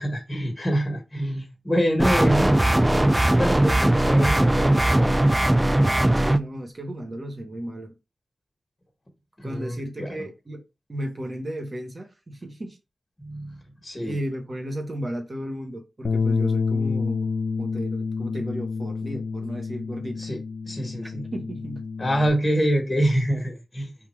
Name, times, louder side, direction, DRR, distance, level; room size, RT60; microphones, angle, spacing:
voice 1, 0.0-2.5 3.4-5.1 9.4-10.3 13.2-13.6 13.8-14.2 20.2-20.4 20.7-21.2 22.0-23.9, equal, 30° left, 1.6 m, -26 dB
sound 1, 2.0-6.4, right 1 dB, 20° right, 0.4 m, -19 dB
voice 2, 6.1-7.9 9.4-10.6 10.9-12.8 14.0-17.3 17.6-20.2 21.0-21.9, equal, 45° right, 1.3 m, -34 dB
Bass guitar, 16.0-22.3, left 4 dB, 80° left, 0.7 m, -28 dB
3.6 x 2.8 x 4.6 m
cardioid pair, 55°, 0 cm